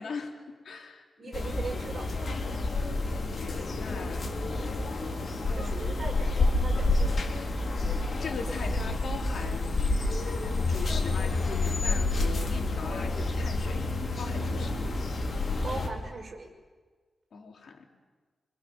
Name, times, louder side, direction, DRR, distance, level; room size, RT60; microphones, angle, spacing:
voice 1, 0.0-1.3 2.7-4.3 5.5-5.8 8.2-9.8 10.7-13.8 14.2-15.0 17.3-17.9, left 4 dB, 70° left, 1 dB, 4.0 m, -40 dB
voice 2, 1.2-2.1 5.5-7.2 15.6-16.5, right 3 dB, 40° right, 1 dB, 6.1 m, -39 dB
sound 1, 1.3-15.9, left 2 dB, 50° left, 3.9 m, -29 dB
27.5 x 25.0 x 7.3 m, 1.4 s
wide cardioid pair, 135°, 0 cm